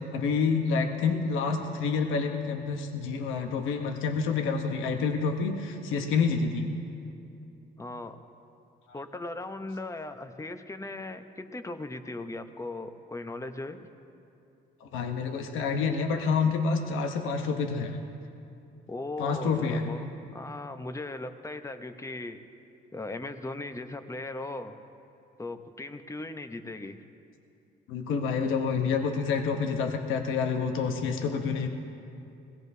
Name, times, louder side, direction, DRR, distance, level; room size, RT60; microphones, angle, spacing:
voice 1, 0.0-6.7 14.8-18.0 19.2-19.9 27.9-31.7, left 5 dB, 90° left, 4 dB, 1.0 m, -28 dB
voice 2, 7.8-8.2 8.9-13.8 18.9-22.4 22.9-24.8 25.4-27.0, left 2 dB, 15° left, 8 dB, 0.8 m, -38 dB
21.0 x 17.5 x 2.7 m, 2.6 s
cardioid pair, 90°, 20 cm